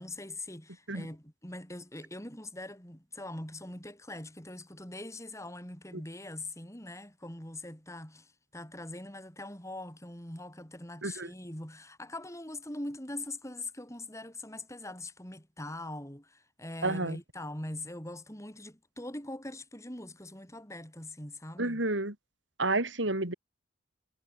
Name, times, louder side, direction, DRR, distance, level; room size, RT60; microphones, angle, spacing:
voice 1, 0.0-21.9, left 1 dB, 15° left, 6.6 m, -42 dB
voice 2, 16.8-17.2 21.6-22.1 22.6-23.3, right 2 dB, 75° right, 3.7 m, -30 dB
head